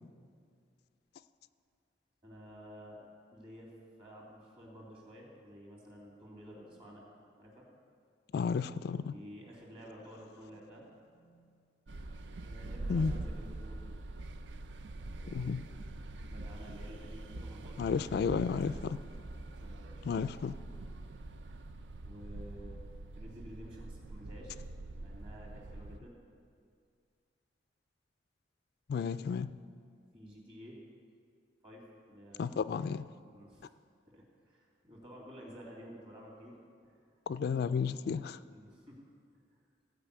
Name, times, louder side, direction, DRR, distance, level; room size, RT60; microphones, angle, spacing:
voice 1, 2.2-3.0 3.3-7.1 7.4-7.7 9.0-11.6 12.4-13.9 15.1-15.8 16.3-17.8 18.3-18.8 19.6-20.1 22.0-22.8 23.1-24.6 24.9-26.2 30.1-30.8 31.6-32.5 33.3-33.7 34.1-36.6 36.8-37.0 38.5-39.0 39.5-39.6, equal, 35° right, -3 dB, 2.9 m, -52 dB
voice 2, 8.3-9.1 12.9-13.2 15.3-15.6 17.8-19.0 20.0-20.6 28.9-29.5 32.4-33.1 37.3-38.4, left 6 dB, 60° left, 13 dB, 0.3 m, -32 dB
sound 1, 11.9-26.0, right 2 dB, 80° right, 0.5 m, -44 dB
15.5 x 5.2 x 8.3 m, 2.2 s
head